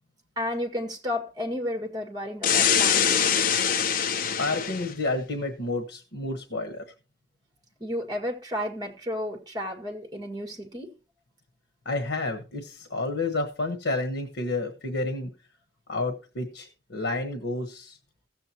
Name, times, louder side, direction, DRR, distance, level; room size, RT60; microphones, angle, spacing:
voice 1, 0.4-3.3 7.8-10.9, left 1 dB, 20° right, 1.9 m, -32 dB
sound 1, 2.4-4.9, left 8 dB, 50° left, 0.5 m, -23 dB
voice 2, 4.4-6.8 11.8-15.3 15.9-18.0, left 2 dB, 85° left, 1.2 m, -30 dB
16.0 x 7.8 x 2.9 m
head